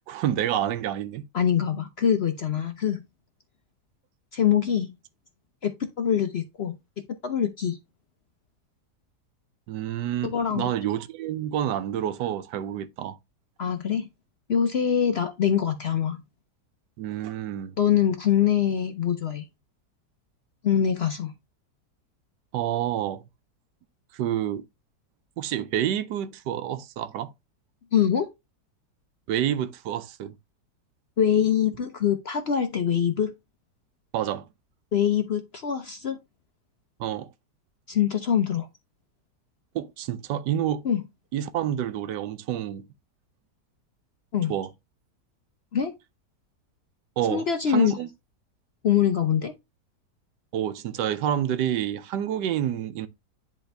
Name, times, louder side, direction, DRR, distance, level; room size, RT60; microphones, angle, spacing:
voice 1, 0.1-1.3 9.7-13.2 17.0-17.8 22.5-23.2 24.1-24.7 25.4-27.3 29.3-30.3 34.1-34.5 37.0-37.3 39.7-40.9 41.3-42.9 44.5-44.7 47.2-48.1 50.5-53.1, right 10 dB, 85° right, 1.3 m, -28 dB
voice 2, 1.3-3.0 4.3-4.9 5.6-6.8 7.2-7.8 10.3-10.7 13.6-14.1 14.5-16.2 17.8-19.4 20.6-21.3 27.9-28.3 31.2-33.3 34.9-36.2 37.9-38.7 40.8-41.0 44.3-44.5 45.7-45.9 47.3-48.0 48.8-49.5, left 8 dB, 55° left, 0.7 m, -24 dB
10.5 x 3.5 x 3.3 m
omnidirectional pair, 1.8 m